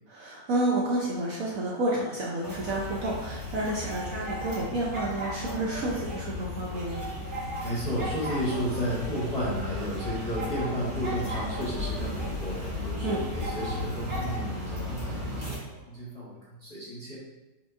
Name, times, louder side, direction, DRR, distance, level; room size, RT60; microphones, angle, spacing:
voice 1, 0.1-7.0 13.0-13.2, right 1 dB, 65° right, -4 dB, 0.9 m, -30 dB
sound 1, 2.4-15.6, left 1 dB, 35° right, 0.9 m, -34 dB
voice 2, 7.6-17.2, equal, 30° left, -7 dB, 0.8 m, -33 dB
5.0 x 3.7 x 2.5 m, 1.1 s
omnidirectional pair, 1.9 m